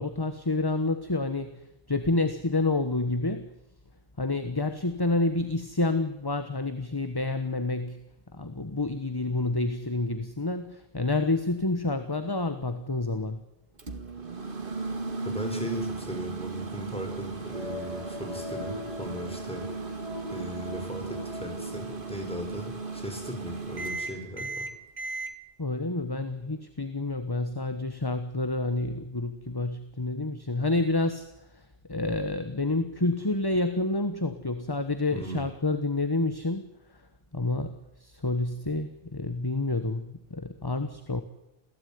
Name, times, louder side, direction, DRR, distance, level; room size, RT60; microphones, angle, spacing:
voice 1, 0.0-3.5 4.2-8.0 8.3-13.4 25.6-31.3 31.5-37.1 37.3-41.2, left 2 dB, 20° left, 9 dB, 1.4 m, -29 dB
Microwave oven, 13.8-25.3, right 4 dB, 60° right, 2.2 m, -36 dB
voice 2, 15.2-19.6 20.3-24.7 35.1-35.4, equal, 5° left, 2 dB, 7.0 m, -37 dB
sound 1, 17.5-23.7 24.1-24.2, left 2 dB, 35° right, 4.9 m, -42 dB
28.0 x 16.5 x 9.6 m, 0.89 s
omnidirectional pair, 1.0 m